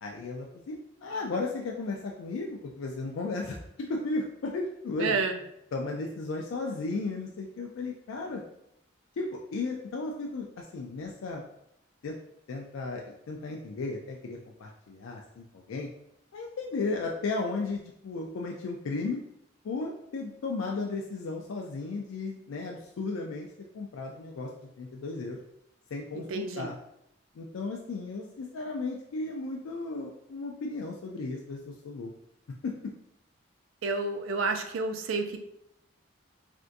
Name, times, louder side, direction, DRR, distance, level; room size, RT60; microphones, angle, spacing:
voice 1, 0.0-3.6 3.9-5.2 5.7-8.4 9.2-11.4 12.0-12.2 12.5-15.9 16.3-19.2 19.6-23.5 23.7-24.5 24.8-25.4 25.9-26.7 27.4-32.1 32.6-32.7, left 3 dB, 85° left, 0 dB, 0.4 m, -35 dB
voice 2, 5.0-5.4 26.1-26.7 33.8-35.4, right 4 dB, 80° right, 6 dB, 0.4 m, -30 dB
3.4 x 2.5 x 2.6 m, 0.78 s
head